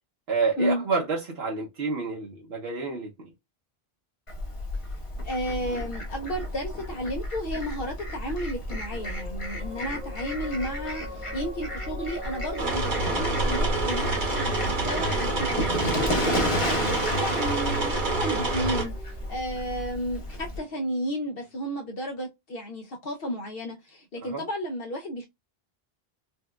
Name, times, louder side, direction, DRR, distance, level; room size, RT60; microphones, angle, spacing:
voice 1, 0.3-3.1 16.3-16.5 24.2-24.4, right 4 dB, 75° right, 1.0 m, -29 dB
Fowl, 4.3-20.6, left 1 dB, 35° left, 0.9 m, -32 dB
voice 2, 5.2-25.3, equal, 65° left, 0.8 m, -33 dB
sound 1, 8.7-21.6, equal, 10° right, 0.4 m, -43 dB
sound 2, 12.6-18.8, right 3 dB, 55° right, 1.0 m, -27 dB
4.3 x 2.3 x 2.2 m
omnidirectional pair, 1.1 m